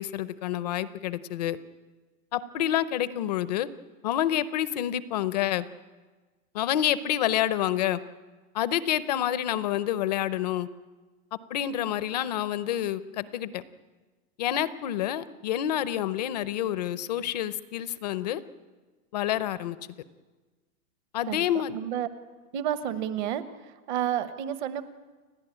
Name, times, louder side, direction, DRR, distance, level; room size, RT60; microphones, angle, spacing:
voice 1, 0.0-1.6 2.3-3.7 4.0-5.7 6.5-8.0 8.5-10.7 11.5-13.6 14.4-18.4 19.1-19.8 21.1-21.8, left 11 dB, 30° left, 16 dB, 0.5 m, -28 dB
voice 2, 21.7-22.1 22.5-23.4 23.9-24.8, right 10 dB, 30° right, 13 dB, 1.0 m, -30 dB
30.0 x 11.5 x 8.9 m, 1.3 s
hypercardioid pair, 160°, 45 cm